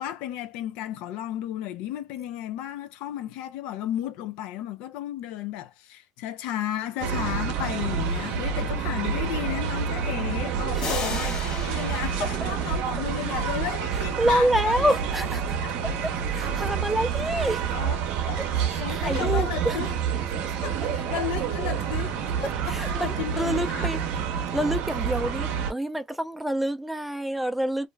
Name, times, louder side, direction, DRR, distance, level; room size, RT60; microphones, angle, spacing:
voice 1, 0.0-14.9 15.6-15.8 17.4-18.0 18.3-19.9 20.4-23.9, left 12 dB, 80° left, 0.4 m, -34 dB
sound 1, 7.0-25.7, right 7 dB, 80° right, 0.6 m, -28 dB
sound 2, 10.8-13.5, left 4 dB, 40° left, 0.9 m, -36 dB
voice 2, 13.9-15.6 16.3-17.6 18.4-19.8 22.6-24.0 24.5-27.9, equal, 5° right, 0.4 m, -27 dB
2.4 x 2.1 x 3.1 m
supercardioid pair, 100°, 2 cm